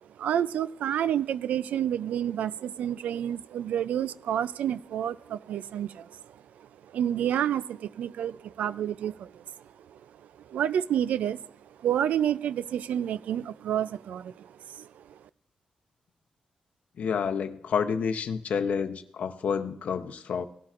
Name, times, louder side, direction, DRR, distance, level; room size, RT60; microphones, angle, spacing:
voice 1, 0.2-9.4 9.9-10.0 10.4-11.5 11.8-15.2, right 10 dB, 90° right, 17 dB, 0.3 m, -29 dB
voice 2, 17.0-20.4, left 6 dB, 70° left, 8 dB, 0.7 m, -29 dB
17.5 x 11.5 x 2.5 m, 0.74 s
cardioid pair, 105°, 2 cm